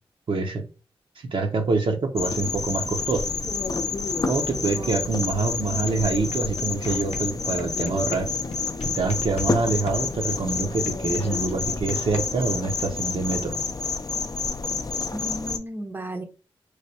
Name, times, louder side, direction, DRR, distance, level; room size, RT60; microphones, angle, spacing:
voice 1, 0.3-0.7 1.2-3.3 4.3-8.3 8.8-13.6, right 3 dB, 60° right, 0.8 m, -26 dB
sound 1, 2.2-15.6, left 4 dB, 40° left, 0.5 m, -29 dB
voice 2, 4.7-5.3 15.1-16.2, right 1 dB, 20° right, 0.7 m, -35 dB
sound 2, 5.3-5.4 5.7-9.6 9.9-12.6, left 4 dB, 80° left, 0.7 m, -39 dB
3.2 x 2.2 x 4.1 m
cardioid pair, 50°, 10 cm